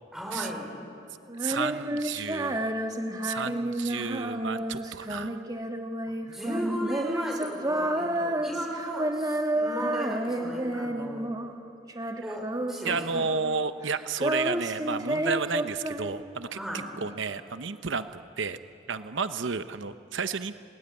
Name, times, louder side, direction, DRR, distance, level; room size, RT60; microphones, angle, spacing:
voice 1, 0.1-0.7 6.3-11.3 12.2-13.0 16.5-16.9, equal, ahead, -1 dB, 5.3 m, -35 dB
Female singing, 1.3-11.6 11.9-13.6 13.8-16.5, right 1 dB, 20° right, 1.3 m, -31 dB
voice 2, 1.4-2.7 3.2-5.4 12.2-12.3 12.8-16.6 17.0-18.6 18.9-20.6, right 5 dB, 80° right, 11 dB, 0.8 m, -32 dB
28.0 x 19.0 x 9.9 m, 2.8 s
head